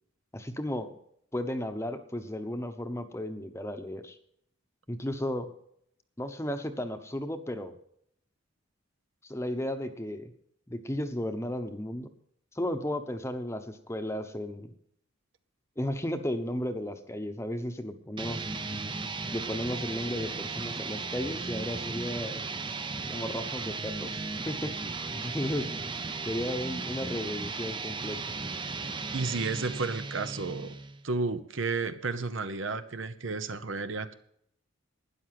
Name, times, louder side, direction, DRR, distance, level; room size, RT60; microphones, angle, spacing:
voice 1, 0.3-0.9 1.3-4.2 4.9-5.5 6.2-7.7 9.2-10.3 10.7-12.1 12.5-14.7 15.8-18.5 19.3-22.4 23.1-25.7 26.3-28.2, left 1 dB, 15° left, 8 dB, 0.9 m, -34 dB
sound 1, 18.2-31.0, right 4 dB, 25° right, 0.6 m, -36 dB
voice 2, 29.1-30.8 31.0-34.1, right 4 dB, 70° right, 11 dB, 0.9 m, -32 dB
12.5 x 9.8 x 5.9 m, 0.71 s
head